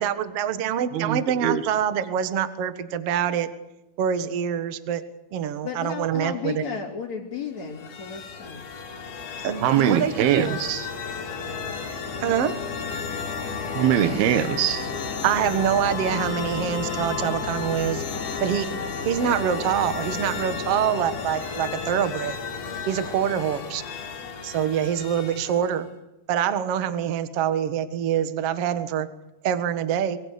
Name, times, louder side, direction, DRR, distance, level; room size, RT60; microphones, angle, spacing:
voice 1, 0.0-3.5 4.0-5.0 5.3-6.6 9.4-10.6 12.2-12.5 15.2-18.0 18.4-18.8 19.1-22.4 22.9-23.8 24.4-25.9 26.3-29.1 29.4-30.2, right 9 dB, 55° right, 11 dB, 2.0 m, -25 dB
voice 2, 0.9-1.6 9.6-10.9 13.7-14.9, right 10 dB, 85° right, 12 dB, 3.2 m, -22 dB
voice 3, 5.6-8.6 23.5-23.8, left 6 dB, 50° left, -4 dB, 4.0 m, -34 dB
sound 1, 7.6-25.8, left 5 dB, 80° left, 4.8 m, -32 dB
25.0 x 23.5 x 6.6 m, 0.97 s
omnidirectional pair, 4.3 m